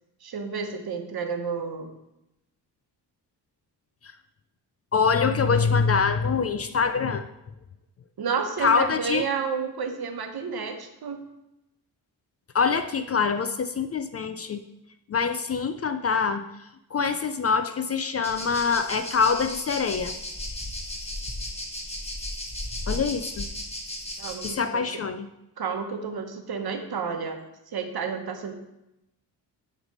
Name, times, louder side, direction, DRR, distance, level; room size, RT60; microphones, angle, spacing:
voice 1, 0.2-1.9 8.2-11.2 24.2-25.0 25.6-27.4 27.7-28.5, right 5 dB, 60° right, 5 dB, 1.0 m, -31 dB
voice 2, 4.9-7.3 8.6-9.3 12.5-14.6 15.1-16.4 16.9-20.1 22.9-23.5 24.4-25.3, left 5 dB, 35° left, 10 dB, 0.4 m, -24 dB
sound 1, 18.2-24.5, left 1 dB, 15° left, 1.2 m, -35 dB
8.0 x 3.3 x 5.2 m, 0.89 s
cardioid pair, 85°, 42 cm